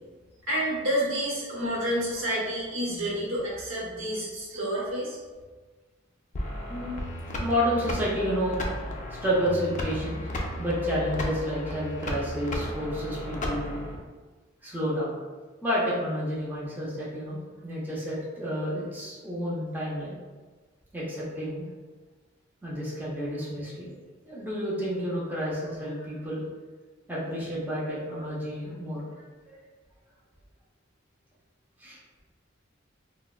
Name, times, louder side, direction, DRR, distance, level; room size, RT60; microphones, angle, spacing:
voice 1, 0.5-5.2, equal, 75° right, -6 dB, 1.0 m, -29 dB
sound 1, 6.3-14.0, left 1 dB, 40° left, 0.4 m, -34 dB
voice 2, 7.3-10.3 10.6-13.8 14.6-15.1 15.6-20.2 20.9-21.7 22.6-23.9 24.2-26.4 27.1-29.6 31.8-32.0, equal, 10° right, -8 dB, 0.5 m, -30 dB
3.3 x 2.1 x 2.2 m, 1.3 s
head